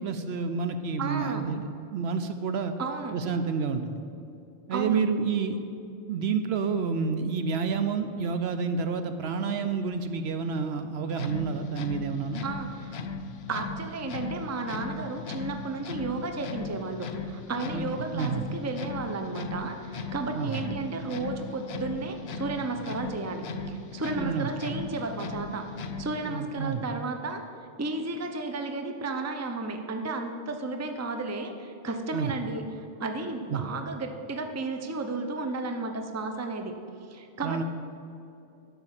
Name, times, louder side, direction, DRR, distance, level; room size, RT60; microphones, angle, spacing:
voice 1, 0.0-1.7 1.9-2.7 3.1-4.0 4.7-5.6 6.1-12.4 17.7-17.9 18.1-18.5 20.3-20.6 24.2-24.8 26.3-26.8 32.1-32.3 33.5-33.6 37.4-37.6, right 5 dB, 65° right, 8 dB, 0.8 m, -29 dB
voice 2, 1.0-1.4 2.8-3.2 4.7-5.0 12.4-13.0 13.5-25.7 26.0-27.4 27.8-36.7 37.1-37.6, right 3 dB, 20° right, 5 dB, 0.6 m, -33 dB
sound 1, 11.1-26.3, left 4 dB, 65° left, 0.9 m, -37 dB
12.0 x 5.7 x 7.4 m, 2.6 s
omnidirectional pair, 1.2 m